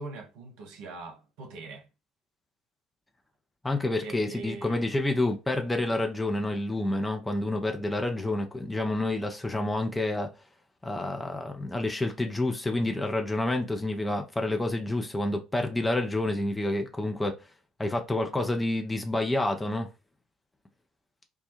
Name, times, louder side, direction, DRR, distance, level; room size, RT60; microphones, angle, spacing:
voice 1, 0.0-1.9 4.0-4.8, right 3 dB, 60° right, 0.8 m, -42 dB
voice 2, 3.6-10.3 10.8-17.4 17.8-19.9, left 2 dB, 10° left, 0.6 m, -28 dB
2.3 x 2.2 x 2.9 m
figure-of-eight pair, 55°, 0 cm